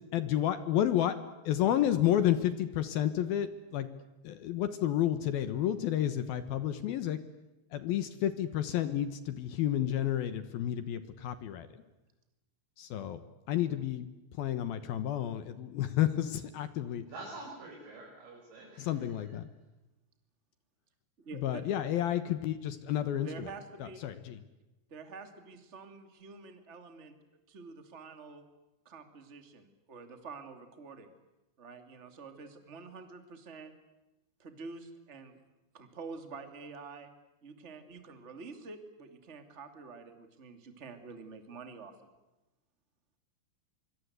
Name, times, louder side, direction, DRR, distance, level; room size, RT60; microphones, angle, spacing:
voice 1, 0.1-1.2 1.5-3.9 4.2-7.2 7.7-11.7 12.8-13.2 13.5-14.1 14.4-17.0 18.8-19.4 21.4-23.3 24.0-24.1, left 11 dB, 70° left, 12 dB, 2.6 m, -30 dB
voice 2, 17.1-19.4, right 2 dB, 75° right, -2 dB, 8.1 m, -47 dB
voice 3, 21.2-21.6 23.2-24.0 24.9-27.1 27.5-28.4 28.8-31.1 31.6-33.7 34.4-35.4 35.7-37.1 37.4-42.1, right 4 dB, 20° right, 7 dB, 2.1 m, -47 dB
25.5 x 25.0 x 8.2 m, 1.0 s
omnidirectional pair, 5.1 m